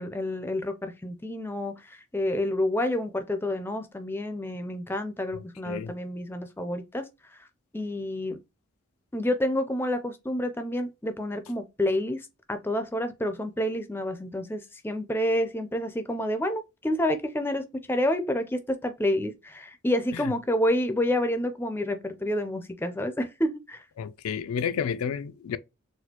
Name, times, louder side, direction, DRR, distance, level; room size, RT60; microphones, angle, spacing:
voice 1, 0.0-7.4 7.7-8.4 9.1-23.8, left 1 dB, 10° left, 0.4 m, -29 dB
voice 2, 24.0-25.6, left 7 dB, 80° left, 0.4 m, -30 dB
4.2 x 2.3 x 2.8 m
head